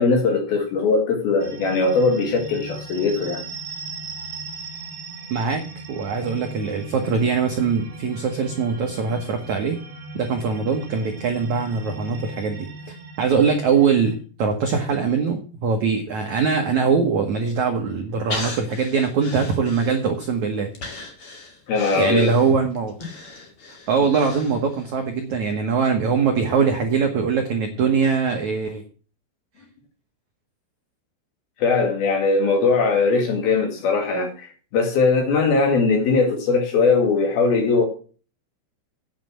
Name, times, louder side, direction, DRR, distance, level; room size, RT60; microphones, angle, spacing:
voice 1, 0.0-3.4 21.7-22.3 31.6-34.5 34.7-37.9, left 4 dB, 60° left, 3.5 m, -20 dB
sound 1, 1.4-14.2, right 3 dB, 50° right, 2.8 m, -38 dB
voice 2, 5.3-5.6 5.9-9.8 10.1-12.7 13.2-20.7 21.9-22.9 23.9-28.8, right 5 dB, 80° right, 1.6 m, -22 dB
Breathing, 18.3-20.3 20.7-24.9 25.3-25.4, left 3 dB, 40° left, 2.3 m, -36 dB
9.2 x 7.4 x 7.7 m
omnidirectional pair, 5.5 m